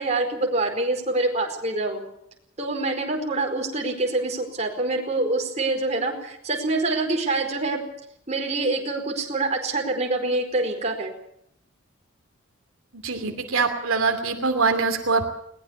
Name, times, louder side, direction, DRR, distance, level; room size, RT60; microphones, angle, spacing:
voice 1, 0.0-2.0 2.6-7.8 8.3-11.1, right 2 dB, 30° right, 2 dB, 4.6 m, -25 dB
voice 2, 12.9-15.2, right 4 dB, 80° right, 5 dB, 2.7 m, -23 dB
21.0 x 20.0 x 7.0 m, 0.74 s
head